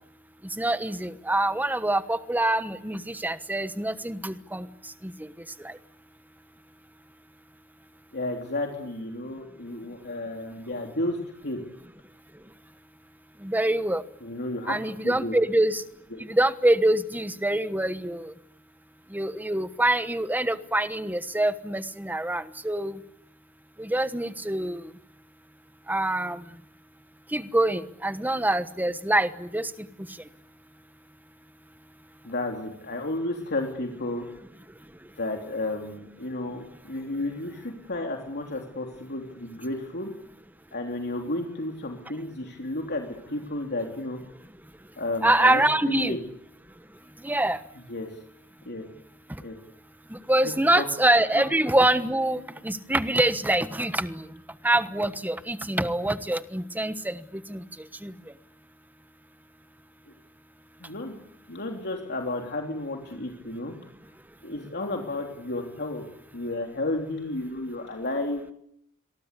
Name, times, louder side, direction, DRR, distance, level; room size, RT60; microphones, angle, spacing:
voice 1, 0.6-4.6 5.6-5.7 13.4-14.0 14.7-15.8 16.3-18.3 19.1-23.0 23.8-24.8 25.9-26.4 27.3-29.7 45.2-46.2 47.2-47.6 50.3-54.2 54.6-57.2 57.5-57.6 58.0-58.1, right 1 dB, 10° right, 12 dB, 1.2 m, -25 dB
voice 2, 8.1-11.6 14.2-15.3 16.1-16.2 32.2-34.3 35.2-40.1 40.7-44.2 45.0-46.2 47.7-48.2 48.6-48.8 49.4-49.5 50.4-50.9 51.3-51.4 60.1-60.2 60.8-61.2 61.5-63.7 64.4-66.0 66.3-68.4, left 2 dB, 50° left, 2 dB, 3.3 m, -32 dB
28.5 x 23.0 x 8.3 m, 0.75 s
head